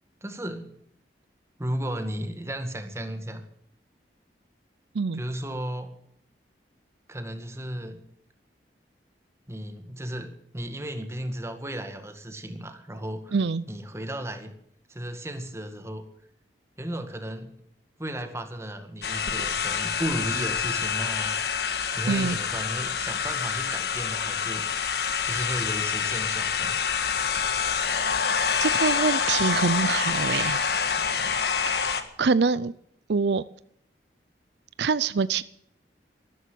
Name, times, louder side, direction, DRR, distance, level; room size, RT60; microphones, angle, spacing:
voice 1, 0.2-0.8 1.6-3.4 5.1-5.9 7.1-8.0 9.5-13.4 13.7-14.5 14.9-16.0 16.8-17.5 18.0-21.4 21.9-24.7 25.2-26.8, right 1 dB, 15° right, 7 dB, 1.9 m, -34 dB
voice 2, 13.3-13.6 22.1-22.4 28.6-30.7 31.7-31.8 32.2-32.7 33.1-33.4 34.8-35.4, right 4 dB, 75° right, 17 dB, 0.5 m, -25 dB
sound 1, 19.0-32.0, left 6 dB, 60° left, 1.7 m, -27 dB
13.5 x 13.0 x 7.5 m, 0.68 s
head